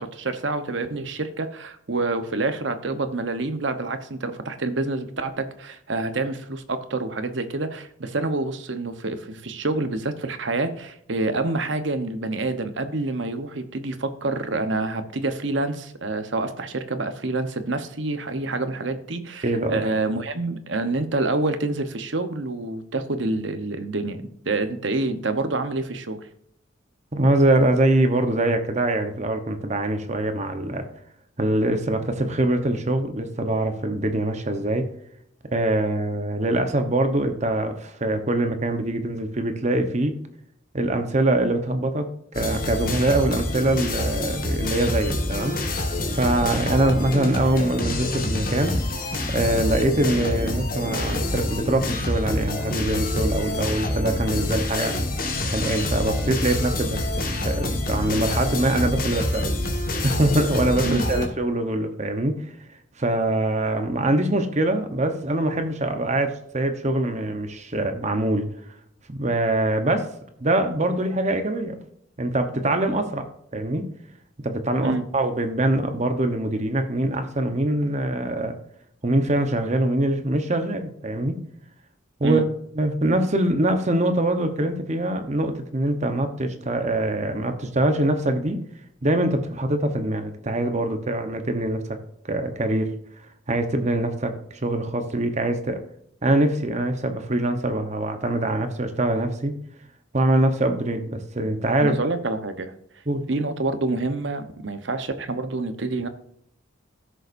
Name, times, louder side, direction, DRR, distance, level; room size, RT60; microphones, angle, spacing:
voice 1, 0.0-26.2 60.8-61.0 74.8-75.0 82.2-82.4 101.8-102.7 103.3-106.1, right 2 dB, 65° right, 9 dB, 1.0 m, -27 dB
voice 2, 19.4-19.9 27.1-30.8 31.4-34.9 35.5-40.2 40.7-42.1 42.3-45.9 46.1-48.8 49.3-55.0 55.5-59.5 60.0-62.4 63.0-68.5 69.1-70.1 70.4-71.8 72.2-73.3 73.5-73.9 74.4-78.5 79.0-81.4 82.2-82.4 82.8-88.6 89.0-92.0 92.2-92.9 93.5-94.3 94.6-95.8 96.2-99.5 100.1-102.0 103.1-103.2, right 1 dB, 35° right, 7 dB, 1.0 m, -23 dB
sound 1, 42.3-61.3, left 1 dB, 45° left, 1.6 m, -26 dB
16.0 x 6.8 x 2.6 m, 0.71 s
head